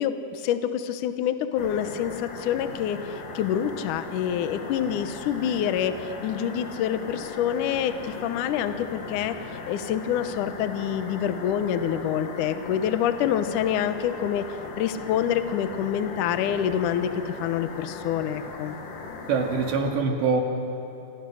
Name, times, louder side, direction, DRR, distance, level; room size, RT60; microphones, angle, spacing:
voice 1, 0.0-5.9 6.2-14.5 14.8-18.8, left 9 dB, 85° left, 10 dB, 1.8 m, -27 dB
sound 1, 1.6-19.8, left 4 dB, 55° left, 3.5 m, -38 dB
voice 2, 19.3-20.4, right 4 dB, 75° right, 2 dB, 4.4 m, -24 dB
29.5 x 26.5 x 6.4 m, 2.8 s
omnidirectional pair, 5.1 m